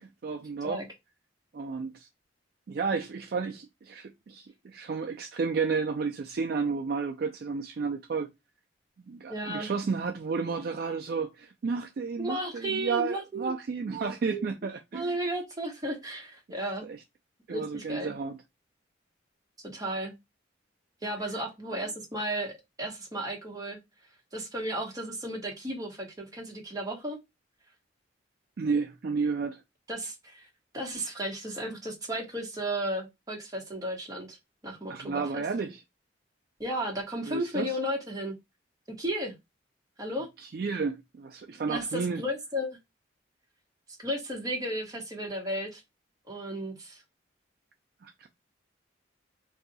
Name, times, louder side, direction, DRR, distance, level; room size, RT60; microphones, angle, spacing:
voice 1, 0.2-0.8 1.5-2.1 2.7-8.3 9.1-15.1 16.8-17.0 17.5-18.4 28.6-29.6 34.9-35.8 37.3-37.7 40.5-42.2 48.0-48.3, right 5 dB, 50° right, 0.3 m, -32 dB
voice 2, 9.3-9.7 12.2-13.5 13.9-14.5 14.9-16.9 17.5-18.1 19.7-20.1 21.0-23.8 24.3-27.2 29.9-30.5 30.7-34.4 34.6-35.4 36.6-38.4 39.0-39.3 40.0-40.3 41.7-42.8 44.0-45.8 46.2-47.0, right 1 dB, 20° right, 1.0 m, -34 dB
2.7 x 2.3 x 3.9 m
head